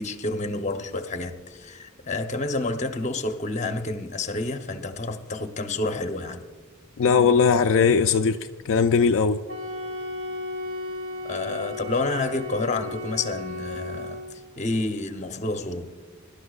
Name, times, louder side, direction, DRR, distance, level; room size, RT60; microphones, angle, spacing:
voice 1, 0.0-6.5 11.2-15.9, left 2 dB, 35° left, 0.8 m, -29 dB
voice 2, 7.0-8.4 8.7-9.4, left 5 dB, 60° left, 0.4 m, -19 dB
Wind instrument woodwind instrument, 9.5-14.4, left 2 dB, 50° right, 4.6 m, -35 dB
24.5 x 12.0 x 2.4 m
head